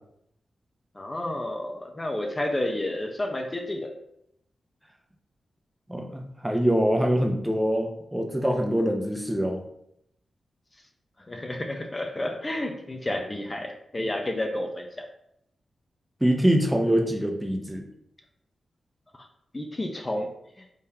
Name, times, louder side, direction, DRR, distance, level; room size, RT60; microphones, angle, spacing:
voice 1, 0.9-3.9 11.3-15.1 19.1-19.3 19.5-20.3 20.6-20.7, left 1 dB, 30° left, 2 dB, 0.6 m, -31 dB
voice 2, 5.9-9.6 16.2-17.8, equal, 10° right, 2 dB, 0.7 m, -24 dB
3.7 x 3.3 x 2.8 m, 0.74 s
supercardioid pair, 45°, 0 cm